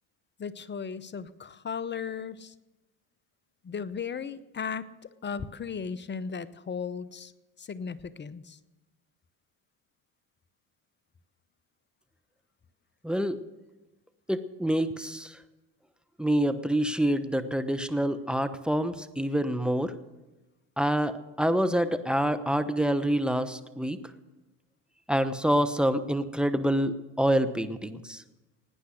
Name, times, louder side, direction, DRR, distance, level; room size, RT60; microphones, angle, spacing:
voice 1, 0.4-2.5 3.6-4.9 5.2-7.3 7.6-8.6, left 6 dB, 25° left, 16 dB, 0.8 m, -36 dB
voice 2, 13.0-13.4 14.3-15.4 16.2-19.9 20.8-24.0 25.1-28.2, equal, ahead, 12 dB, 0.9 m, -27 dB
18.0 x 9.6 x 6.4 m, 1.1 s
hypercardioid pair, 75°, 47 cm